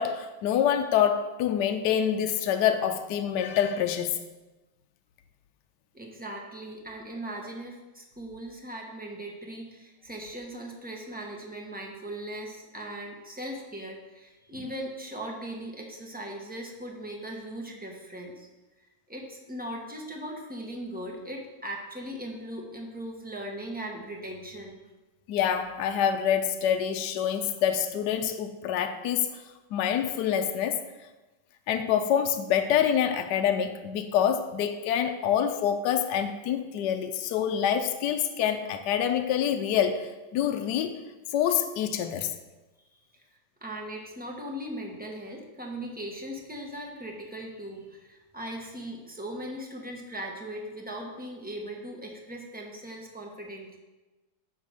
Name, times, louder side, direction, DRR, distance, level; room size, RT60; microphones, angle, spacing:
voice 1, 0.0-4.1 25.3-29.3 29.7-30.8 31.7-40.9 41.3-42.3, left 9 dB, 75° left, 6 dB, 1.1 m, -26 dB
voice 2, 5.9-18.5 18.8-24.8 43.6-53.8, right 1 dB, 5° right, -1 dB, 0.8 m, -39 dB
10.0 x 3.4 x 6.5 m, 1.1 s
omnidirectional pair, 1.9 m